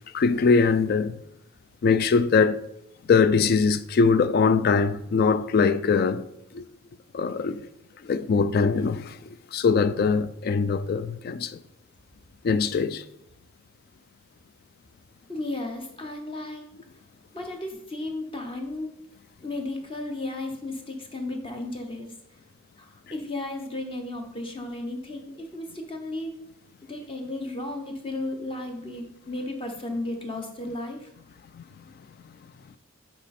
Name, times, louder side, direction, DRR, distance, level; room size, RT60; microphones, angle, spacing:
voice 1, 0.1-1.2 1.8-2.6 3.1-6.3 6.5-6.6 7.1-7.7 8.0-9.2 9.5-11.6 12.4-13.0 31.5-31.6, left 5 dB, 45° left, 0.3 m, -22 dB
voice 2, 15.3-16.6 17.3-18.9 19.4-22.1 22.8-26.3 26.9-31.1, left 2 dB, 25° left, 0.8 m, -34 dB
9.4 x 3.3 x 4.2 m
head